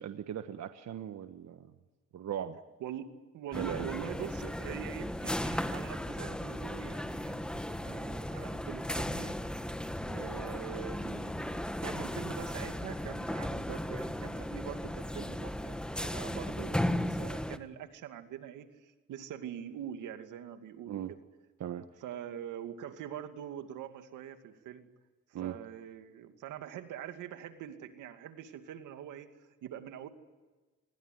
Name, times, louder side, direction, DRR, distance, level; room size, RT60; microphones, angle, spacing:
voice 1, 0.0-1.7 2.1-2.6 3.5-4.1 20.9-21.1 21.6-21.9 25.3-25.6, right 10 dB, 65° right, 8 dB, 1.4 m, -38 dB
voice 2, 2.8-9.3 10.1-21.2 22.0-24.9 25.3-30.1, right 10 dB, 90° right, 7 dB, 2.5 m, -44 dB
sound 1, 3.5-17.6, left 1 dB, 5° left, 1.7 m, -36 dB
27.5 x 21.5 x 9.5 m, 1.2 s
cardioid pair, 90°, 30 cm